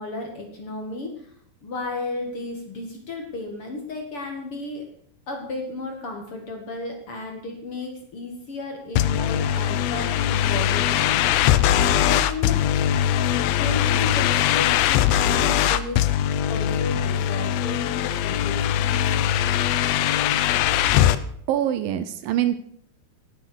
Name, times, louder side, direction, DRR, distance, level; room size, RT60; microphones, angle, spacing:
voice 1, 0.0-1.3 1.6-4.9 5.3-12.6 13.3-16.0 16.5-19.2, left 2 dB, 45° left, 3 dB, 2.1 m, -34 dB
sound 1, 9.0-21.2, left 11 dB, 80° left, 2.5 m, -21 dB
voice 2, 21.5-22.6, right 11 dB, 75° right, 12 dB, 2.3 m, -24 dB
17.0 x 8.0 x 6.2 m, 0.65 s
omnidirectional pair, 4.4 m